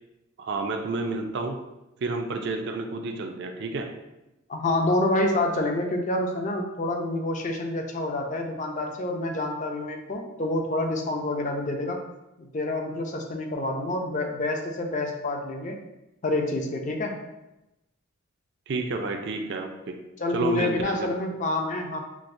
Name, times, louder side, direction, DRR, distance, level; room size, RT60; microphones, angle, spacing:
voice 1, 0.4-1.6 2.0-3.9 18.7-20.0 20.3-21.1, right 3 dB, 60° right, 4 dB, 0.4 m, -30 dB
voice 2, 4.5-12.0 12.4-15.8 16.2-17.2 20.2-22.0, left 2 dB, 40° left, 3 dB, 0.5 m, -27 dB
5.9 x 2.0 x 2.6 m, 0.94 s
head